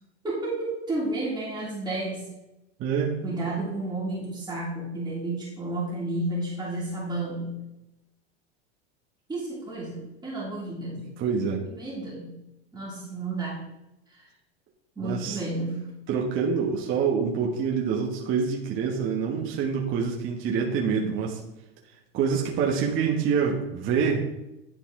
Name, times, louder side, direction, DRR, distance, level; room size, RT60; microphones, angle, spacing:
voice 1, 0.2-2.3 3.2-7.5 9.3-11.1 11.6-12.3 12.7-13.7 14.1-14.2 15.0-15.9, right 2 dB, 10° right, -10 dB, 2.3 m, -31 dB
voice 2, 2.8-3.2 10.9-11.6 15.0-15.4 16.1-21.4 22.1-24.2, right 6 dB, 40° right, -1 dB, 1.2 m, -26 dB
10.5 x 4.1 x 3.6 m, 0.91 s
supercardioid pair, 120°, 32 cm